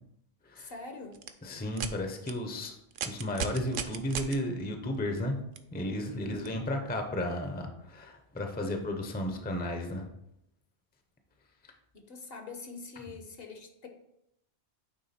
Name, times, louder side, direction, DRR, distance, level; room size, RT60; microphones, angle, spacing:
voice 1, 0.5-1.2 6.1-6.5 11.9-13.9, left 3 dB, 55° left, 5 dB, 1.1 m, -44 dB
sound 1, 1.1-1.3 1.7-1.9 2.3-2.4 2.9-4.4 5.6-5.7 6.5-6.6, right 7 dB, 60° right, 0.6 m, -35 dB
voice 2, 1.4-2.7 3.0-5.4 5.7-10.1, left 1 dB, 10° left, 4 dB, 0.6 m, -33 dB
9.0 x 3.6 x 4.2 m, 0.78 s
omnidirectional pair, 1.2 m